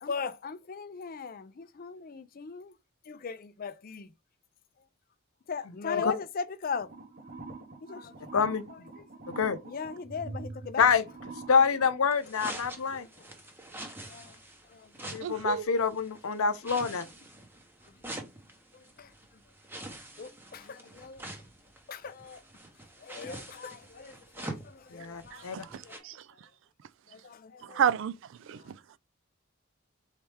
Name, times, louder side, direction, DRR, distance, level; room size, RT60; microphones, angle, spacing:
voice 1, 0.0-2.8 3.1-4.1 5.5-6.9 7.8-8.2 8.7-8.8 9.3-9.4 9.6-10.9 12.8-13.3 14.1-14.4 14.7-14.9 17.9-18.0 18.7-19.4 20.2-21.3 21.9-22.4 23.0-25.5 25.8-26.0 27.1-27.8 28.5-28.7, left 5 dB, 45° left, 0.4 m, -39 dB
sound 1, 6.7-12.1, right 3 dB, 45° right, 0.9 m, -45 dB
voice 2, 8.3-8.7 9.4-9.6 10.8-11.0 11.5-13.1 15.0-17.1 24.9-25.6, left 5 dB, 80° left, 0.6 m, -26 dB
sound 2, 12.1-26.0, right 1 dB, 10° right, 0.8 m, -46 dB
voice 3, 15.2-15.7 25.3-26.2 27.6-28.8, right 8 dB, 60° right, 0.3 m, -31 dB
4.2 x 3.3 x 3.3 m
head